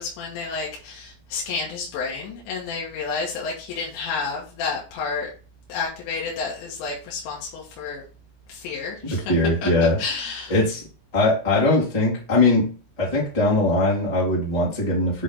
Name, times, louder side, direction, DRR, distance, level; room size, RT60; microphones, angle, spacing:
voice 1, 0.0-5.3 5.7-8.0 8.5-9.3 9.6-9.7 10.0-10.5, left 4 dB, 80° left, -3 dB, 3.6 m, -30 dB
voice 2, 9.1-10.0 10.5-10.8 11.1-15.2, left 2 dB, 15° left, -6 dB, 1.3 m, -21 dB
8.3 x 3.2 x 4.0 m, 0.36 s
omnidirectional pair, 5.1 m